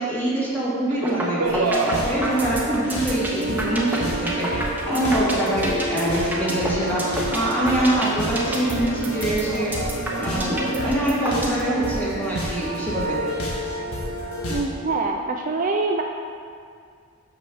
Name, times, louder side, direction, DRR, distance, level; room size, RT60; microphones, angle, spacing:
voice 1, 0.0-9.8 10.2-13.2, right 1 dB, 10° left, -8 dB, 2.2 m, -24 dB
sound 1, 0.9-11.9, right 3 dB, 85° right, 0.7 m, -32 dB
sound 2, 1.0-1.3 1.5-11.6, right 1 dB, 10° right, 1.0 m, -29 dB
sound 3, 1.4-14.6, equal, 80° left, 1.6 m, -29 dB
voice 2, 14.5-16.0, right 3 dB, 35° right, 2 dB, 0.4 m, -24 dB
5.9 x 5.9 x 7.0 m, 2.2 s
head